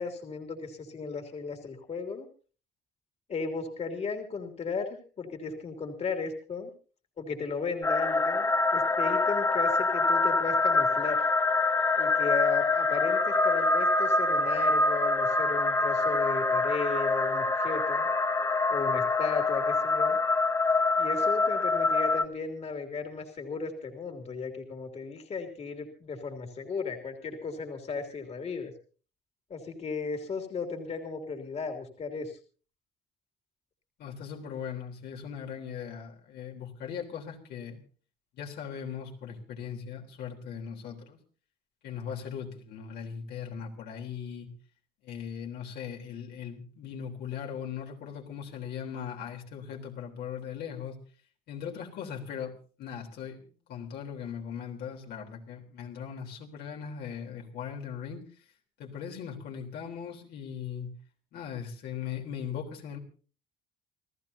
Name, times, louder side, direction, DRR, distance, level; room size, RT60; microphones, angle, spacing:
voice 1, 0.0-2.3 3.3-4.9 5.2-6.7 7.2-11.3 12.0-18.1 18.7-20.2 21.0-28.7 29.5-32.4, left 4 dB, 40° left, 4 dB, 2.7 m, -35 dB
sound 1, 7.8-22.3, left 3 dB, 20° left, 1.2 m, -25 dB
voice 2, 34.0-37.8 38.3-41.2 41.8-44.5 45.0-51.0 51.5-52.5 52.8-58.2 58.8-60.9 61.3-63.0, left 7 dB, 75° left, 1 dB, 3.6 m, -39 dB
28.5 x 14.5 x 2.8 m, 0.39 s
cardioid pair, 110°, 17 cm